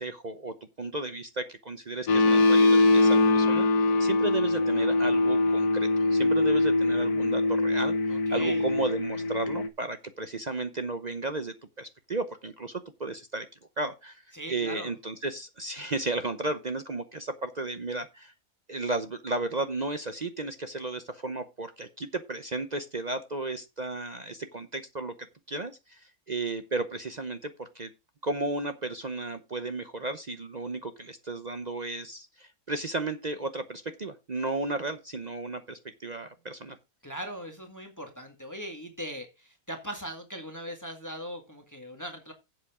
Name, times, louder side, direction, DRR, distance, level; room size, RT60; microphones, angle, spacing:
voice 1, 0.0-13.5 13.8-18.3 18.7-25.1 25.5-27.9 28.2-36.8, right 3 dB, 40° right, 0.7 m, -34 dB
sound 1, 2.1-9.7, left 2 dB, 90° left, 1.5 m, -23 dB
voice 2, 8.1-8.7 14.3-14.9 37.0-42.3, equal, 10° left, 1.8 m, -39 dB
11.5 x 7.8 x 3.6 m
omnidirectional pair, 1.6 m